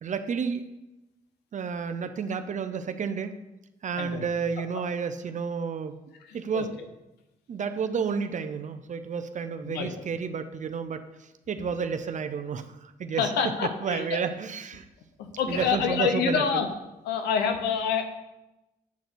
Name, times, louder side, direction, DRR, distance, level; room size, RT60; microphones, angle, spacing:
voice 1, 0.0-0.6 1.5-3.4 3.8-6.0 6.3-6.7 7.5-11.0 11.5-13.3 13.8-14.8 15.5-16.6, right 6 dB, 50° right, 9 dB, 0.6 m, -31 dB
voice 2, 6.2-6.7 9.6-10.1 13.2-14.2 15.2-16.7 17.0-18.1, left 6 dB, 90° left, 7 dB, 0.9 m, -27 dB
8.4 x 4.0 x 6.1 m, 0.98 s
supercardioid pair, 70°, 17 cm